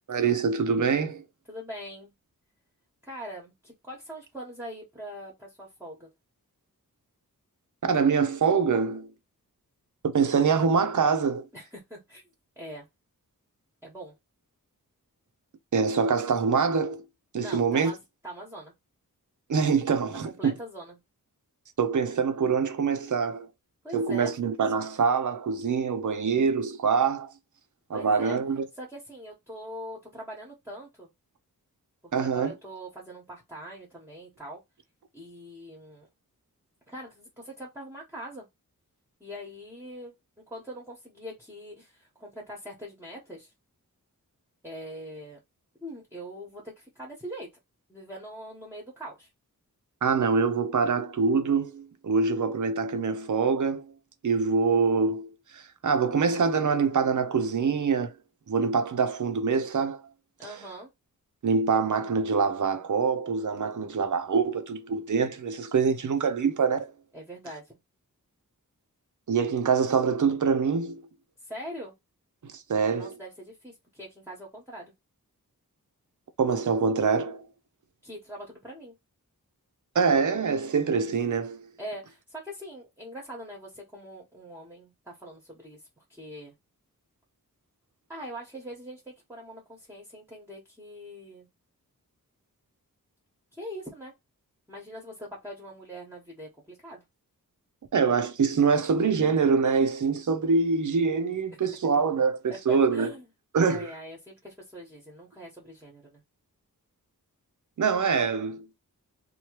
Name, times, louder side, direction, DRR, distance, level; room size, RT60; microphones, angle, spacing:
voice 1, 0.1-1.2 7.8-9.1 10.0-11.5 15.7-17.0 17.3-17.9 19.5-20.5 21.8-23.5 23.9-27.3 27.9-28.6 32.1-32.5 50.0-53.9 54.2-58.2 58.5-60.0 61.4-66.9 69.3-71.0 72.4-73.1 76.4-77.5 79.9-81.7 97.9-103.1 103.5-103.9 107.8-108.7, right 5 dB, 60° right, 0.6 m, -25 dB
voice 2, 1.5-2.1 3.0-6.1 11.5-12.2 12.6-12.9 13.8-14.1 17.4-18.7 20.1-21.0 23.8-24.3 27.9-28.4 28.7-31.1 32.0-34.6 35.1-36.1 36.9-38.4 39.2-40.1 40.5-43.5 44.6-45.4 45.8-47.5 47.9-49.3 60.4-60.9 67.1-67.8 71.4-71.9 72.9-74.9 78.0-78.9 81.8-86.5 88.1-91.5 93.5-94.1 94.7-97.0 102.5-103.2 103.5-106.2, right 1 dB, 5° right, 1.1 m, -42 dB
3.0 x 2.2 x 3.1 m
wide cardioid pair, 85°, 34 cm